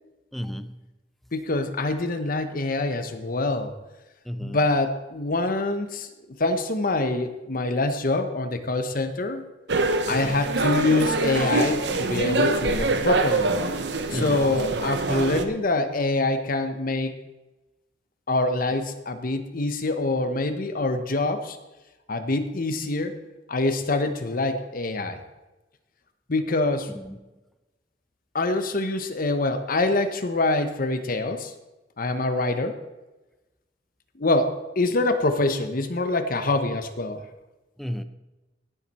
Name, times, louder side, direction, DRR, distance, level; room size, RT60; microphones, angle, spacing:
voice 1, 0.3-0.8 4.2-4.6 10.1-10.4 14.1-14.5 26.9-27.2 37.8-38.0, equal, ahead, 0.6 m, -33 dB
voice 2, 1.3-3.7 4.4-6.1 6.4-9.4 10.1-13.5 14.1-17.1 18.3-21.6 22.1-23.1 23.5-25.2 26.3-26.9 28.3-31.5 32.0-32.8 34.2-37.2, left 2 dB, 55° left, 1.0 m, -25 dB
sound 1, 9.7-15.4, right 3 dB, 75° right, 1.0 m, -24 dB
17.0 x 7.6 x 4.3 m
head